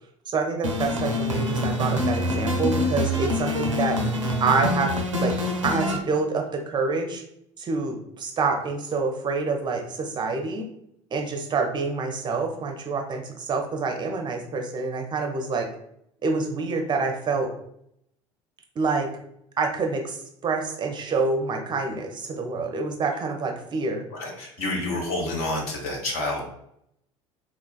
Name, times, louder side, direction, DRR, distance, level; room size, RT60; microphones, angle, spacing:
voice 1, 0.3-4.0 4.4-4.9 5.2-5.4 5.6-7.2 7.6-10.7 11.1-15.7 16.2-17.5 18.8-19.1 19.6-24.0, right 4 dB, 30° right, 3 dB, 0.5 m, -27 dB
sound 1, 0.6-6.0, left 1 dB, 85° right, 0.4 m, -25 dB
voice 2, 24.1-26.4, left 2 dB, 60° left, -1 dB, 0.9 m, -28 dB
3.5 x 2.2 x 2.3 m, 0.73 s
figure-of-eight pair, 60°, 16 cm